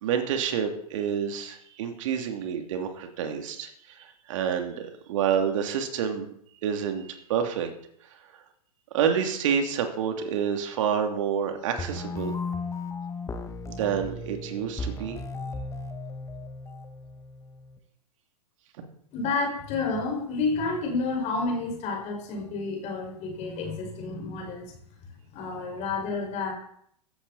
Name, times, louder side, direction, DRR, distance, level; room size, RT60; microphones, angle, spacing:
voice 1, 0.0-3.7 4.0-6.3 6.6-7.7 8.9-12.3 13.7-15.2, right 8 dB, 50° right, 5 dB, 2.9 m, -28 dB
sound 1, 11.8-17.8, left 3 dB, 15° left, 1.7 m, -35 dB
voice 2, 19.1-24.7 25.3-26.5, left 3 dB, 35° left, 1 dB, 5.5 m, -30 dB
16.0 x 14.5 x 4.2 m, 0.67 s
figure-of-eight pair, 100°, 20 cm